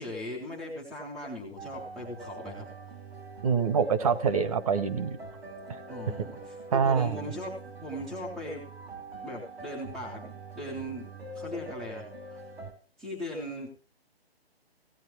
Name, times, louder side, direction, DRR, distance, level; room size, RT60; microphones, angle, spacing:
voice 1, 0.0-2.7 5.9-8.6 9.2-11.1 11.3-12.4 13.0-13.7, left 1 dB, ahead, -5 dB, 0.5 m, -39 dB
sound 1, 1.6-12.7, right 2 dB, 75° right, 3.1 m, -44 dB
voice 2, 3.4-5.2 6.7-7.3, right 6 dB, 35° right, 11 dB, 1.0 m, -25 dB
16.5 x 8.0 x 4.6 m, 0.38 s
hypercardioid pair, 160°, 32 cm